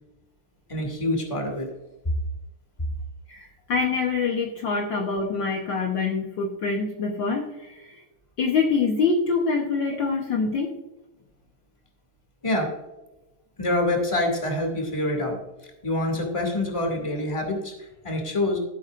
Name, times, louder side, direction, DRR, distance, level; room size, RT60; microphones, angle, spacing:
voice 1, 0.7-1.7 12.4-12.7 13.6-15.4 15.8-18.6, left 1 dB, 10° left, 2 dB, 1.7 m, -26 dB
voice 2, 3.3-8.0 8.4-10.7, left 4 dB, 70° left, 1 dB, 1.1 m, -25 dB
15.5 x 8.5 x 2.5 m, 1.0 s
omnidirectional pair, 3.5 m